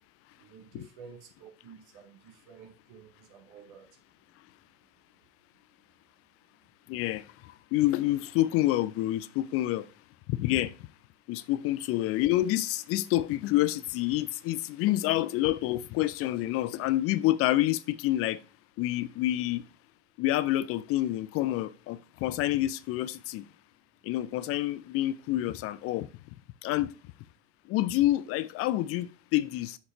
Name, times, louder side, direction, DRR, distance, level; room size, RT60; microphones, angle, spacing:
voice 1, 0.4-3.9, right 6 dB, 60° right, 2.7 m, -51 dB
voice 2, 6.9-9.9 10.3-10.8 11.3-18.4 18.8-19.6 20.2-23.5 24.0-26.1 26.6-26.9 27.7-29.8, left 15 dB, 40° left, 0.4 m, -28 dB
6.6 x 5.4 x 4.9 m
hypercardioid pair, 75°, 36 cm